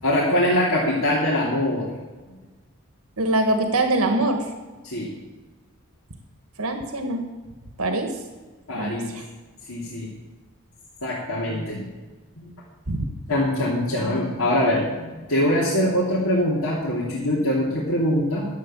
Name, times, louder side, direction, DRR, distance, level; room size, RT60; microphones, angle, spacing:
voice 1, 0.0-1.9 2.3-2.4 4.8-5.1 8.7-9.2 9.7-10.1 11.0-11.8 12.4-12.5 13.3-18.5, left 1 dB, 85° left, -7 dB, 2.8 m, -23 dB
voice 2, 3.2-4.4 6.6-7.2 7.8-8.1 8.7-9.2 12.9-13.0, right 2 dB, 85° right, 5 dB, 1.5 m, -23 dB
12.0 x 7.9 x 7.5 m, 1.3 s
head